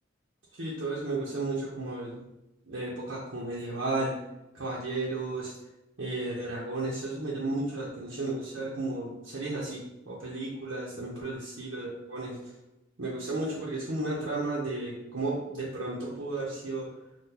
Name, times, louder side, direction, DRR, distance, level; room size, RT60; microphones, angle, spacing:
voice 1, 0.5-2.3 2.7-4.2 4.5-5.5 6.0-12.5 13.0-16.9, right 2 dB, 60° right, -7 dB, 0.7 m, -33 dB
3.6 x 2.2 x 2.8 m, 0.91 s
head